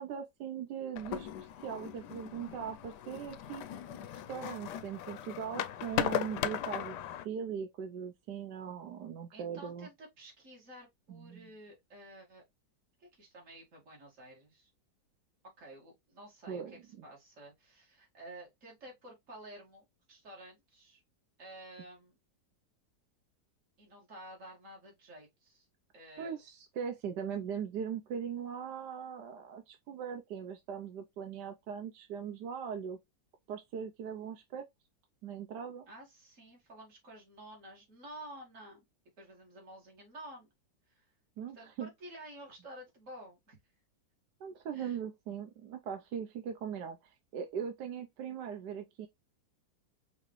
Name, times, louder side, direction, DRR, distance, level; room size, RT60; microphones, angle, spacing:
voice 1, 0.0-3.6 4.1-7.0 7.2-9.9 11.1-11.5 16.5-17.0 26.2-33.0 33.5-34.7 35.2-35.9 41.4-41.9 44.4-49.1, right 7 dB, 70° right, 1.2 m, -40 dB
sound 1, 1.0-7.3, left 10 dB, 75° left, 1.1 m, -38 dB
voice 2, 9.3-12.4 13.0-14.7 15.6-21.0 21.4-22.2 23.8-25.7 25.9-26.4 35.9-38.8 39.2-40.5 40.9-41.0 41.5-43.6 44.7-45.0, right 1 dB, 40° right, 2.6 m, -51 dB
5.6 x 3.0 x 3.1 m
omnidirectional pair, 2.0 m